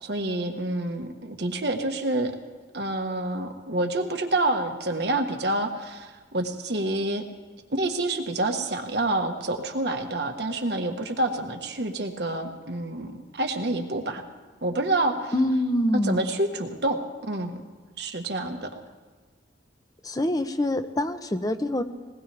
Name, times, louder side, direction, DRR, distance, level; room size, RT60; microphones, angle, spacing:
voice 1, 0.0-2.3 2.7-7.2 7.7-14.2 14.6-15.3 16.0-17.0 17.3-17.6 18.0-18.8, right 2 dB, 60° right, 5 dB, 1.4 m, -28 dB
voice 2, 15.3-16.2 20.0-21.8, left 1 dB, 20° left, 8 dB, 0.8 m, -25 dB
20.5 x 19.5 x 3.4 m, 1.4 s
head